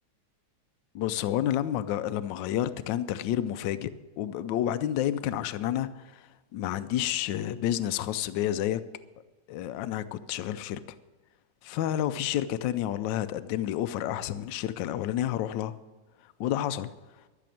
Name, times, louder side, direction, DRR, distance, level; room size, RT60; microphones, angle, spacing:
voice 1, 0.9-8.8 9.5-10.8 11.6-15.7 16.4-16.9, left 11 dB, 80° left, 12 dB, 1.3 m, -30 dB
13.5 x 6.9 x 9.1 m, 1.3 s
omnidirectional pair, 2.0 m